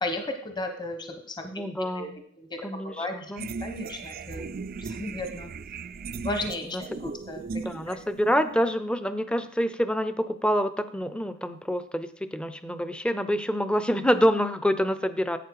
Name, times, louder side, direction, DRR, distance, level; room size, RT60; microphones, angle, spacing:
voice 1, 0.0-1.6 1.9-2.1 2.4-2.6 3.0-3.3 3.6-4.5 4.8-5.5 6.2-7.5 7.9-8.0, left 2 dB, 20° left, 6 dB, 1.1 m, -34 dB
voice 2, 1.5-2.2 2.6-3.5 6.6-7.0 7.6-15.4, equal, 5° left, 12 dB, 0.6 m, -27 dB
sound 1, 3.4-8.7, right 4 dB, 45° right, 0.4 m, -38 dB
12.0 x 8.2 x 4.8 m, 0.64 s
head